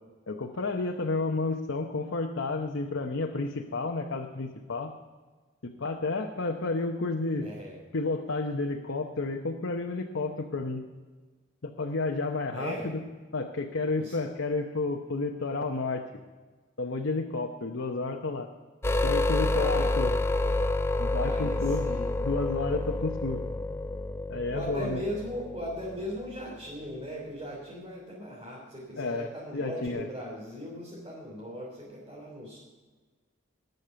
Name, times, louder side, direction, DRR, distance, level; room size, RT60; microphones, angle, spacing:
voice 1, 0.3-4.9 5.6-7.5 7.9-10.8 11.6-12.8 13.3-16.0 16.8-18.5 19.0-20.1 21.0-21.9 22.2-23.4 24.3-25.0 29.0-30.1, left 3 dB, 85° left, 3 dB, 0.9 m, -31 dB
voice 2, 7.4-7.8 12.5-12.9 14.0-14.2 19.5-19.9 21.2-22.1 24.5-32.6, equal, 25° right, -7 dB, 3.6 m, -38 dB
sound 1, 18.8-26.6 29.9-30.0, left 2 dB, 15° left, 0.4 m, -29 dB
20.0 x 6.7 x 5.7 m, 1.4 s
head